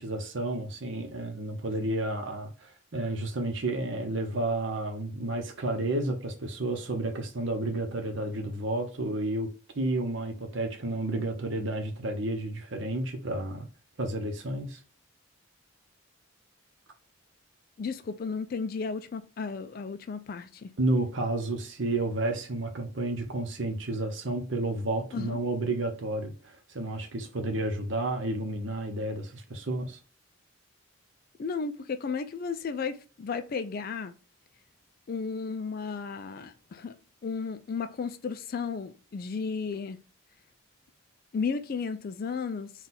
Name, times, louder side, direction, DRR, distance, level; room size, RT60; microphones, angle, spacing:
voice 1, 0.0-9.5 9.7-13.7 14.0-14.8 20.8-30.0, right 2 dB, 60° right, 0.8 m, -31 dB
voice 2, 17.8-20.7 25.1-25.4 31.4-34.1 35.1-37.0 37.2-40.0 41.3-42.7, left 5 dB, 45° left, 0.3 m, -34 dB
3.9 x 2.3 x 4.1 m
head